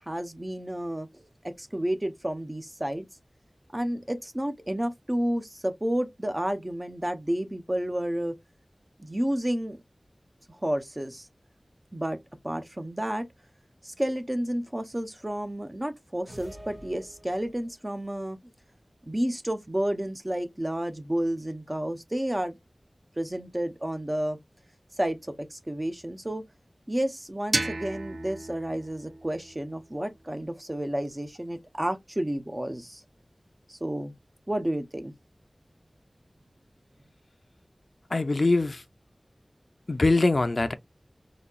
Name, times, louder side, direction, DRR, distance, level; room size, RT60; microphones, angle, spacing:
voice 1, 0.1-1.1 1.4-3.1 3.7-8.3 9.0-9.8 10.6-11.3 11.9-12.2 12.4-13.2 13.8-18.4 19.1-22.6 23.2-24.4 24.9-26.4 26.9-33.0 33.7-34.1 34.5-35.1, right 1 dB, 25° right, 0.7 m, -31 dB
sound 1, 16.3-17.8, right 1 dB, 55° right, 1.8 m, -47 dB
sound 2, 27.5-30.4, right 2 dB, 85° right, 0.7 m, -34 dB
voice 2, 38.1-38.8 39.9-40.7, left 2 dB, 65° left, 0.5 m, -23 dB
4.1 x 2.8 x 2.3 m
wide cardioid pair, 60°, 0 cm